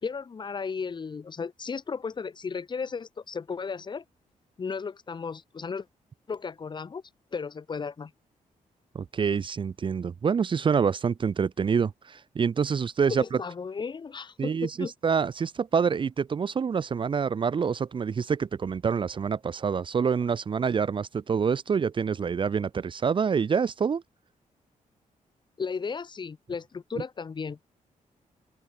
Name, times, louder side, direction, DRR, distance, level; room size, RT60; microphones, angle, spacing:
voice 1, 0.0-4.0 4.6-5.9 6.3-7.0 7.3-8.1 13.1-14.9 25.6-27.6, left 5 dB, 35° left, 4.6 m, -34 dB
voice 2, 8.9-13.4 14.4-24.0, right 6 dB, 35° right, 1.2 m, -26 dB
open air
wide cardioid pair, 165°, 14 cm